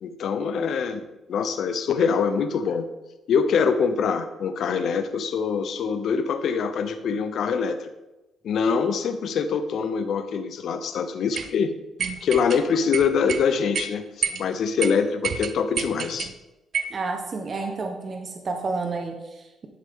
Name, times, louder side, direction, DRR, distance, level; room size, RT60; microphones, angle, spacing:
voice 1, 0.0-2.9 3.3-7.9 8.4-11.8 12.2-16.3, left 6 dB, 65° left, 8 dB, 0.8 m, -24 dB
sound 1, 11.4-11.5 12.0-12.6 12.9-13.4 13.7-13.9 14.2-14.4 14.8-14.9 15.2-16.3 16.7-17.0, right 6 dB, 60° right, 0.6 m, -28 dB
voice 2, 16.9-19.7, right 3 dB, 40° right, 4 dB, 1.1 m, -30 dB
11.5 x 6.6 x 3.8 m, 1.0 s
cardioid pair, 90°, 0 cm